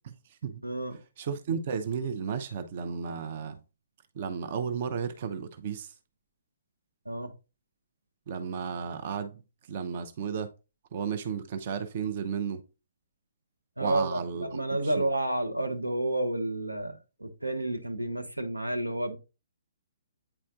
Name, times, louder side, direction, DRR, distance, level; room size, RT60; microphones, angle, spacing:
voice 1, 0.0-0.6 1.2-3.6 4.2-5.9 8.3-9.4 9.7-10.5 10.9-12.6 13.8-14.5 14.8-15.0, right 6 dB, 45° right, 0.6 m, -33 dB
voice 2, 0.6-1.0 7.0-7.3 13.8-19.2, right 1 dB, 90° right, 1.1 m, -30 dB
8.8 x 4.2 x 2.5 m
figure-of-eight pair, 130°, 0 cm